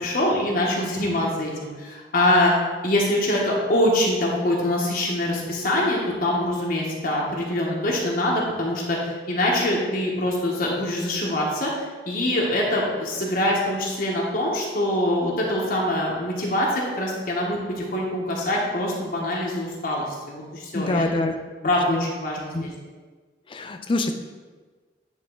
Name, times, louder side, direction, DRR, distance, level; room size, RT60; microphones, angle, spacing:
voice 1, 0.0-2.5 2.8-21.1 21.6-22.7, left 1 dB, 55° left, -3 dB, 1.2 m, -24 dB
voice 2, 20.7-21.3 21.9-22.1 22.5-22.7 23.5-24.1, left 2 dB, 30° left, 6 dB, 0.5 m, -25 dB
9.1 x 3.6 x 3.8 m, 1.4 s
head